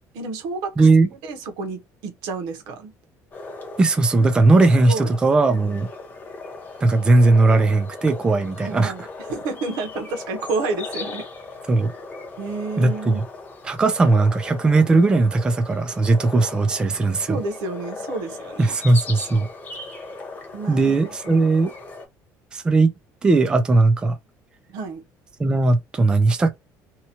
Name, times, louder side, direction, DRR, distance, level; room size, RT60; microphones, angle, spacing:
voice 1, 0.1-0.9 1.2-2.9 4.5-5.1 8.6-11.3 12.4-13.2 17.3-18.8 20.5-21.5 24.7-25.0, right 3 dB, 85° right, 0.8 m, -30 dB
voice 2, 0.8-1.1 3.8-5.9 6.8-8.9 11.7-11.9 12.8-13.2 13.6-17.4 18.6-19.5 20.7-21.7 22.5-22.9 23.2-24.2 25.4-26.5, right 3 dB, 15° right, 0.3 m, -18 dB
sound 1, 3.3-22.1, left 3 dB, 25° left, 0.7 m, -38 dB
2.8 x 2.2 x 2.8 m
cardioid pair, 165°, 7 cm